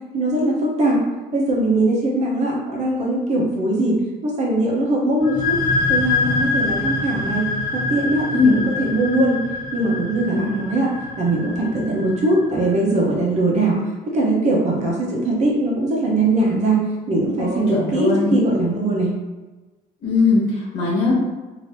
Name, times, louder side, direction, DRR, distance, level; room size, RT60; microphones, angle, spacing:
voice 1, 0.1-1.0 1.3-3.9 4.2-5.6 5.9-7.4 7.7-9.4 9.7-10.9 11.2-13.8 14.1-16.8 17.1-19.1, right 2 dB, 45° right, -3 dB, 0.9 m, -20 dB
sound 1, 5.2-12.7, left 3 dB, 25° left, 1.2 m, -25 dB
voice 2, 17.4-18.3 20.0-21.2, left 4 dB, 85° left, -5 dB, 1.1 m, -19 dB
2.8 x 2.8 x 3.3 m, 1.2 s
cardioid pair, 110°, 17 cm